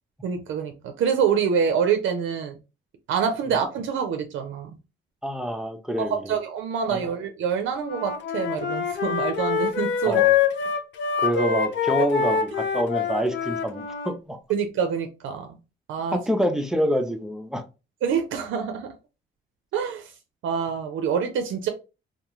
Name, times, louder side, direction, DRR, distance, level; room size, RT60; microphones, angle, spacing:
voice 1, 0.2-2.6 3.1-4.7 6.0-10.2 12.0-12.1 14.5-15.6 15.9-16.2 18.0-18.9 19.7-20.1 20.4-21.7, right 7 dB, 75° right, 0.5 m, -26 dB
voice 2, 5.2-6.3 6.9-7.0 10.0-10.4 11.2-14.4 16.1-17.6, equal, 5° right, 0.6 m, -26 dB
Wind instrument woodwind instrument, 7.8-14.1, left 7 dB, 70° left, 0.6 m, -25 dB
2.3 x 2.3 x 3.0 m
cardioid pair, 90°, 20 cm